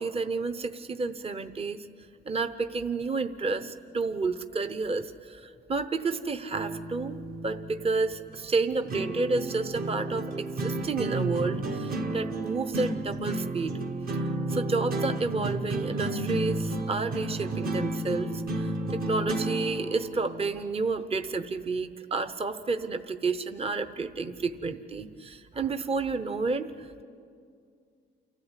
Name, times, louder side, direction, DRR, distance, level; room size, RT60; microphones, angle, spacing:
voice 1, 0.0-1.9 2.3-13.8 14.5-27.0, right 3 dB, 30° right, 9 dB, 0.9 m, -30 dB
sound 1, 6.5-20.5, right 2 dB, 50° right, 1.3 m, -32 dB
29.0 x 13.5 x 8.3 m, 2.3 s
cardioid pair, 90°, 20 cm